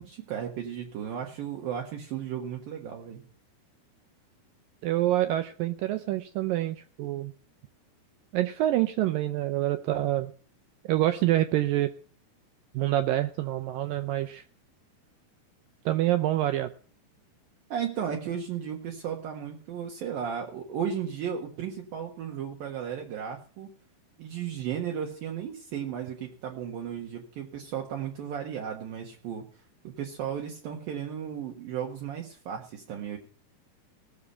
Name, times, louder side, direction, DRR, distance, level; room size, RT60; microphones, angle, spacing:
voice 1, 0.0-3.2 17.7-23.7 24.2-29.4 29.8-33.2, right 8 dB, 65° right, 1 dB, 3.0 m, -35 dB
voice 2, 4.8-7.3 8.3-10.3 10.8-11.9 12.7-14.4 15.9-16.7, right 14 dB, 80° right, 10 dB, 2.0 m, -26 dB
18.5 x 7.3 x 5.6 m, 0.43 s
omnidirectional pair, 4.8 m